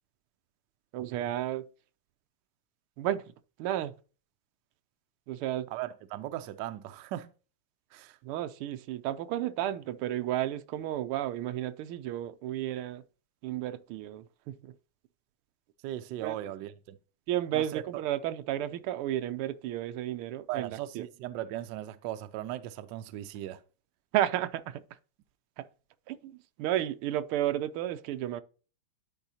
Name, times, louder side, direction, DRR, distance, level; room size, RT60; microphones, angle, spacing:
voice 1, 0.9-1.7 3.0-3.3 3.6-3.9 5.3-5.7 8.2-13.0 13.4-14.7 16.2-16.3 17.3-21.1 24.1-24.8 25.6-25.7 26.1-28.4, right 12 dB, 90° right, 1.5 m, -32 dB
voice 2, 5.7-7.3 7.9-8.2 15.8-17.0 17.5-17.8 20.5-23.6, right 13 dB, 70° right, 1.1 m, -38 dB
10.5 x 4.9 x 2.8 m
omnidirectional pair, 2.3 m